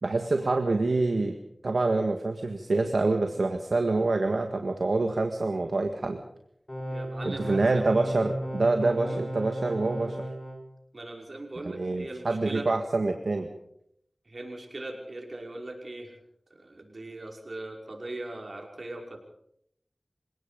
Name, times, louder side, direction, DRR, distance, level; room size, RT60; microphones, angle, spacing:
voice 1, 0.0-1.4 1.6-6.2 7.2-10.2 11.6-13.5, right 3 dB, 80° right, 5 dB, 1.7 m, -26 dB
sound 1, 6.7-10.6, right 1 dB, 25° left, 7.9 m, -34 dB
voice 2, 6.9-7.9 9.1-9.2 10.9-12.7 14.3-16.2 16.5-19.2, right 2 dB, 65° right, 1 dB, 5.6 m, -40 dB
28.5 x 18.0 x 5.3 m, 0.73 s
wide cardioid pair, 40°, 0 cm